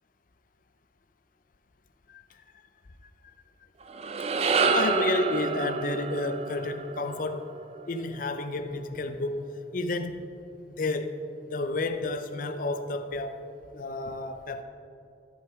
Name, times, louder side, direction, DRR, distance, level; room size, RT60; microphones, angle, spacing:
sound 1, 3.8-8.3, right 4 dB, 35° right, 0.4 m, -28 dB
voice 1, 4.7-7.5 7.9-10.2 10.8-11.1 11.5-13.4 13.7-14.6, left 2 dB, 45° left, 9 dB, 0.5 m, -31 dB
14.0 x 5.8 x 3.5 m, 2.6 s
head